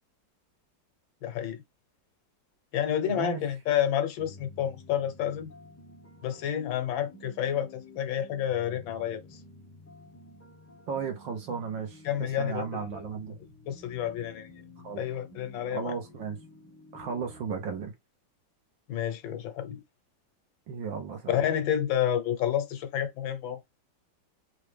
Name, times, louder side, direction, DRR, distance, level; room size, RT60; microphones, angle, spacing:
voice 1, 1.2-1.6 2.7-5.5 6.2-9.4 12.1-13.0 13.7-14.5 15.0-15.9 18.9-19.8 21.3-23.6, left 10 dB, 90° left, 1.7 m, -30 dB
voice 2, 3.1-3.5 10.9-13.4 14.8-15.0 15.7-16.4 16.9-17.9 20.7-21.4, right 6 dB, 75° right, 2.1 m, -35 dB
sound 1, 4.2-17.8, left 2 dB, 15° left, 0.6 m, -51 dB
4.7 x 2.7 x 3.3 m
omnidirectional pair, 2.1 m